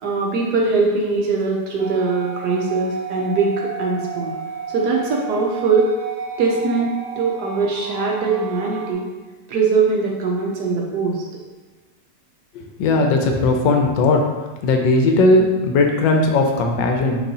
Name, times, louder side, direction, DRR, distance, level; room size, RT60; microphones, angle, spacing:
voice 1, 0.0-4.3 4.7-5.9 6.4-9.1 9.5-11.2, right 4 dB, 65° right, -1 dB, 1.1 m, -21 dB
sound 1, 1.8-8.9, right 6 dB, 90° right, 1.4 m, -32 dB
voice 2, 12.8-14.2 14.6-17.2, left 2 dB, 80° left, 3 dB, 1.3 m, -17 dB
6.0 x 3.0 x 2.7 m, 1.3 s
omnidirectional pair, 2.1 m